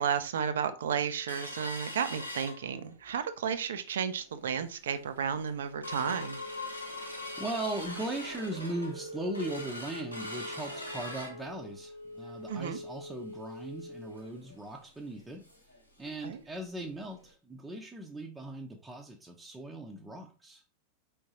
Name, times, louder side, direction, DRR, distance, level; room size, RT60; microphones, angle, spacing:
voice 1, 0.0-6.4 12.5-12.8 16.2-16.4, right 7 dB, 60° right, 0.5 m, -33 dB
sound 1, 1.3-3.1 3.6-3.7 4.0-4.3 4.8-4.9 5.3-15.8 16.1-16.2 16.6-16.8 17.3-17.4, left 1 dB, 90° left, 1.0 m, -41 dB
voice 2, 7.4-15.4 16.0-20.6, right 1 dB, 10° right, 0.6 m, -39 dB
4.6 x 3.5 x 2.8 m
figure-of-eight pair, 90°, 0 cm